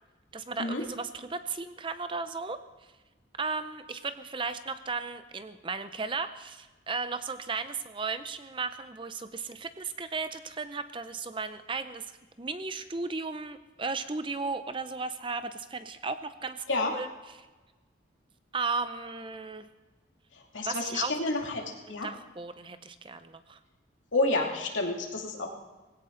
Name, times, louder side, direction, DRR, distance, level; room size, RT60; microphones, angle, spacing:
voice 1, 0.3-2.6 3.4-12.1 12.4-16.6 16.9-17.5 18.5-19.7 20.6-21.2 21.9-23.6, right 4 dB, 25° right, 11 dB, 0.6 m, -35 dB
voice 2, 20.5-21.6 21.9-22.1 24.1-25.5, left 2 dB, 90° left, 1 dB, 2.5 m, -29 dB
19.0 x 17.0 x 3.9 m, 1.2 s
head